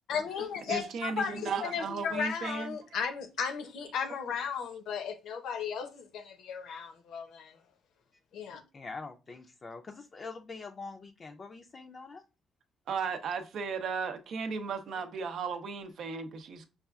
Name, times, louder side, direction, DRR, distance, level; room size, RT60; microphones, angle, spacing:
voice 1, 0.1-7.6 8.3-8.6, left 6 dB, 75° left, 0.7 m, -35 dB
voice 2, 0.7-2.8 12.9-16.7, right 5 dB, 70° right, 0.5 m, -35 dB
voice 3, 8.7-12.2, left 4 dB, 35° left, 0.4 m, -44 dB
5.4 x 2.3 x 2.3 m
cardioid pair, 90°, 0 cm